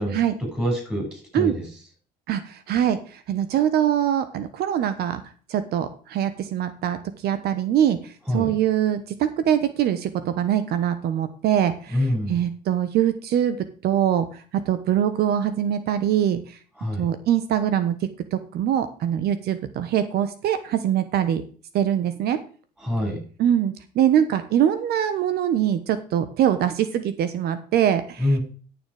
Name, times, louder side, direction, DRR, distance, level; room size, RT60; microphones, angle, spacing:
voice 1, 0.0-1.7 8.3-8.5 11.9-12.4 16.8-17.1 22.8-23.2 28.2-28.4, left 1 dB, 5° right, 1 dB, 6.7 m, -26 dB
voice 2, 2.3-5.2 5.5-7.0 7.2-12.0 12.3-13.6 13.8-16.6 17.0-18.0 18.3-21.4 21.7-22.4 23.4-28.2, right 10 dB, 70° right, 11 dB, 1.1 m, -23 dB
11.0 x 7.2 x 4.9 m, 0.40 s
cardioid pair, 110°, 17 cm